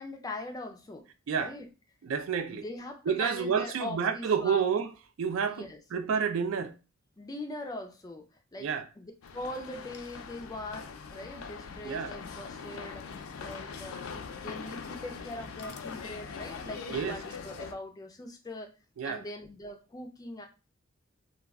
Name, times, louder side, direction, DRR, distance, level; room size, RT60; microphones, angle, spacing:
voice 1, 0.0-1.1 1.3-1.7 2.5-4.6 5.5-5.8 7.2-8.3 8.5-8.7 9.0-13.1 13.4-18.7 19.0-20.5, left 2 dB, 20° left, 0.3 m, -41 dB
voice 2, 2.0-2.6 3.1-4.9 5.2-5.6 5.9-6.7 8.6-8.8 11.8-12.1 16.9-17.2 19.0-19.2, right 6 dB, 75° right, 0.4 m, -29 dB
sound 1, 9.2-17.7, left 5 dB, 90° left, 0.4 m, -42 dB
2.3 x 2.1 x 3.4 m
head